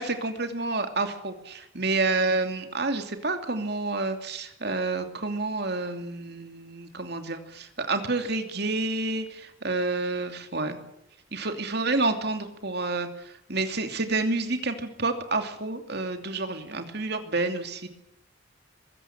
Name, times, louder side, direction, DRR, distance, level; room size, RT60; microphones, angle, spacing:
voice 1, 0.0-10.8 11.3-17.9, right 3 dB, 50° right, 6 dB, 2.8 m, -29 dB
22.5 x 16.0 x 8.9 m, 0.84 s
head